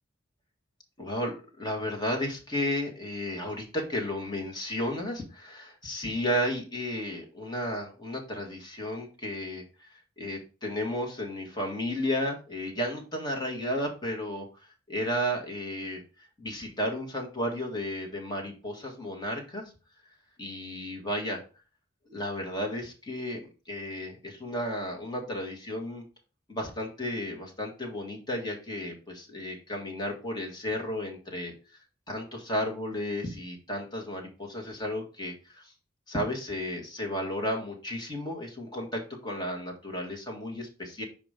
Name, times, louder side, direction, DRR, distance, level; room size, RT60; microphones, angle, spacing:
voice 1, 1.0-14.5 14.9-19.6 20.4-21.4 22.1-23.4 23.7-26.0 26.5-31.5 32.1-35.7 36.1-41.0, left 1 dB, 20° left, 1 dB, 1.7 m, -33 dB
5.2 x 4.9 x 5.1 m, 0.35 s
head